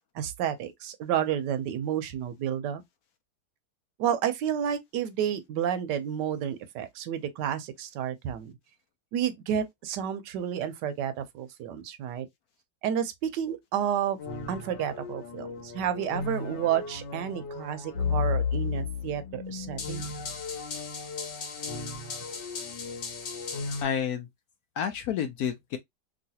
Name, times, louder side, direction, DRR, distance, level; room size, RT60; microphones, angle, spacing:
voice 1, 0.1-2.8 4.0-8.5 9.1-12.3 12.8-14.2 14.5-20.1, right 9 dB, 80° right, 1.2 m, -30 dB
sound 1, 14.2-23.8, left 5 dB, 85° left, 1.5 m, -34 dB
voice 2, 23.8-24.3 24.8-25.8, left 8 dB, 70° left, 0.9 m, -29 dB
3.1 x 2.7 x 2.7 m
omnidirectional pair, 1.9 m